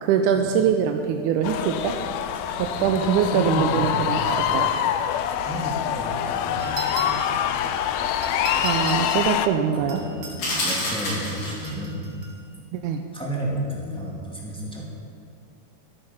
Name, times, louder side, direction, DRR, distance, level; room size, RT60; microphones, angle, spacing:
voice 1, 0.0-2.0 2.6-4.7 8.6-10.0 12.7-13.0, right 7 dB, 80° right, 5 dB, 2.0 m, -23 dB
sound 1, 1.4-9.5, left 10 dB, 90° left, 1.5 m, -25 dB
voice 2, 2.3-4.2 5.4-7.5 8.0-8.1 9.7-12.1 13.1-14.8, equal, ahead, -4 dB, 1.6 m, -32 dB
sound 2, 6.6-7.4 8.2-9.3 9.9-10.4 11.5-12.4, right 3 dB, 40° right, 1.7 m, -36 dB
sound 3, 10.4-11.9, left 1 dB, 55° left, 4.2 m, -28 dB
13.0 x 11.5 x 5.6 m, 2.5 s
omnidirectional pair, 3.8 m